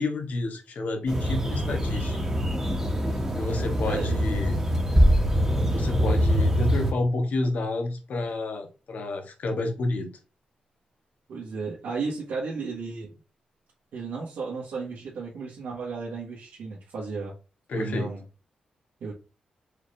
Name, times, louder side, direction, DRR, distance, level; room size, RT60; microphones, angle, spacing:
voice 1, 0.0-2.2 3.4-4.6 5.7-10.1 17.7-18.1, left 2 dB, 70° left, 1.2 m, -29 dB
sound 1, 1.1-6.9, equal, 15° right, 1.4 m, -25 dB
voice 2, 3.8-4.3 11.3-13.1 13.9-17.3 17.7-18.2 19.0-19.1, right 4 dB, 80° right, 1.5 m, -34 dB
sound 2, 5.0-6.8, equal, ahead, 0.6 m, -24 dB
4.9 x 3.4 x 2.6 m
cardioid pair, 70°, 3 cm